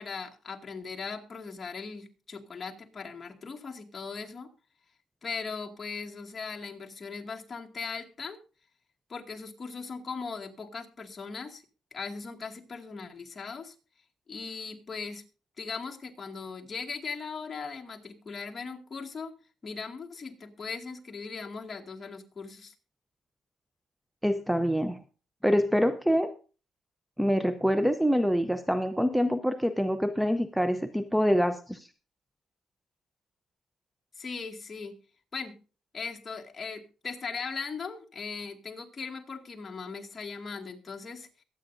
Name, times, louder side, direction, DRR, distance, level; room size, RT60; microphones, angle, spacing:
voice 1, 0.0-4.5 5.2-8.4 9.1-11.6 11.9-13.8 14.3-15.2 15.6-19.3 19.6-22.7 34.2-35.0 35.3-35.6 35.9-41.3, left 5 dB, 35° left, 1 dB, 2.1 m, -39 dB
voice 2, 24.2-25.0 25.4-26.3 27.2-31.9, equal, ahead, 11 dB, 0.7 m, -25 dB
22.5 x 8.7 x 2.6 m, 0.35 s
cardioid pair, 90°, 0 cm